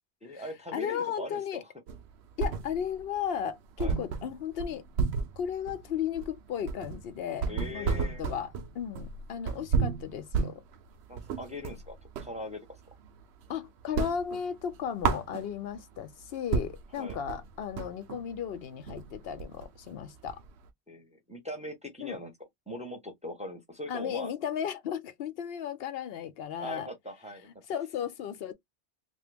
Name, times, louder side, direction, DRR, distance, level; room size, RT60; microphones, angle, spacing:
voice 1, 0.2-1.7 3.8-3.9 7.5-8.2 11.1-12.8 16.9-17.2 20.9-22.3 22.7-24.3 26.6-27.5, left 1 dB, 5° right, 0.7 m, -41 dB
voice 2, 0.7-1.6 2.4-4.8 5.4-10.6 13.5-20.4 22.0-22.2 23.9-26.9 27.7-28.5, left 8 dB, 65° left, 0.7 m, -35 dB
sound 1, 1.9-3.0 3.4-3.5 3.8-12.4 12.8-13.5 13.8-15.8 16.2-16.3 16.5-20.7, right 5 dB, 75° right, 0.8 m, -32 dB
2.9 x 2.4 x 3.3 m
omnidirectional pair, 1.1 m